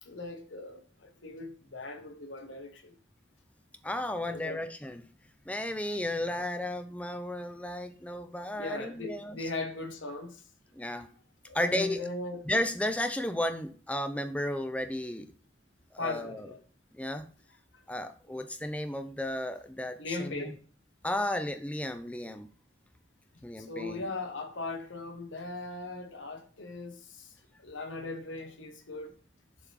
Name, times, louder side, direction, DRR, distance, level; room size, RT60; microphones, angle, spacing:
voice 1, 0.0-2.9 4.3-4.6 8.6-10.4 10.8-10.9 11.5-12.5 16.0-16.6 20.0-20.6 23.6-27.3 27.6-29.2, left 2 dB, 85° left, 1.2 m, -39 dB
voice 2, 3.8-5.0 5.5-9.5 10.7-11.1 11.5-12.0 12.4-15.3 15.9-16.5 16.9-17.3 17.9-20.5 21.0-22.5 23.4-24.0, left 1 dB, 5° left, 0.4 m, -33 dB
7.1 x 3.5 x 4.6 m
head